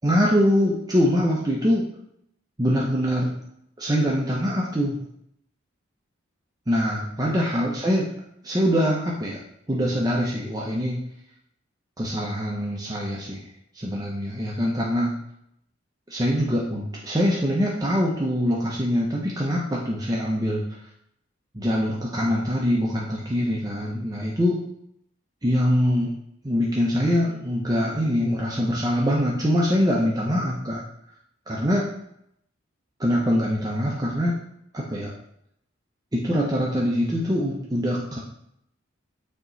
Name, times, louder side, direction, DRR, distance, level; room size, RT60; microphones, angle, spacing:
voice 1, 0.0-1.9 2.6-3.3 3.8-5.0 6.7-8.1 8.4-9.4 9.7-11.0 12.0-13.5 13.7-15.1 16.1-20.6 21.5-24.6 25.4-26.1 26.4-30.8 31.5-31.9 33.0-34.3 34.7-35.1 36.1-38.2, equal, 20° right, -3 dB, 0.7 m, -23 dB
8.5 x 3.0 x 3.9 m, 0.75 s
head